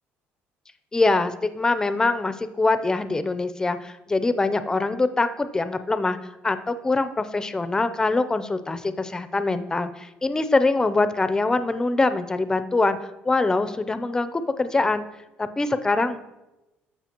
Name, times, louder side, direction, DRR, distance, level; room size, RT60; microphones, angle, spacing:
voice 1, 0.9-6.2 6.4-13.0 13.2-15.1 15.4-16.2, left 3 dB, 15° left, 11 dB, 0.5 m, -23 dB
14.0 x 5.6 x 2.9 m, 0.99 s
cardioid pair, 120°, 4 cm